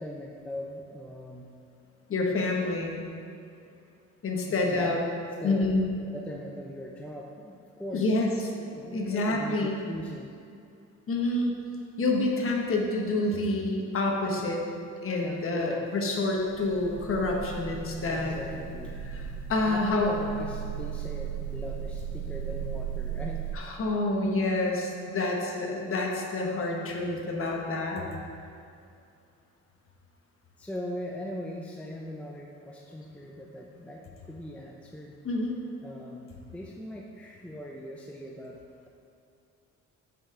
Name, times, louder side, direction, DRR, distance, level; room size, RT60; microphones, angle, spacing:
voice 1, 0.0-1.5 4.5-4.9 5.4-5.7 6.1-8.2 8.6-10.3 15.2-15.9 18.0-19.0 19.7-23.4 30.6-35.1 35.8-38.6, left 1 dB, 5° left, -1 dB, 0.5 m, -40 dB
voice 2, 2.1-3.0 4.2-5.0 5.4-5.9 7.9-8.3 8.9-9.8 11.1-11.5 12.0-14.6 15.0-18.4 19.1-19.2 19.5-20.1 23.5-28.0 35.2-35.5, left 2 dB, 45° left, 0 dB, 1.2 m, -28 dB
sound 1, 16.2-23.5, right 7 dB, 85° left, 1.6 m, -37 dB
7.1 x 5.5 x 3.7 m, 2.5 s
cardioid pair, 90°, 30 cm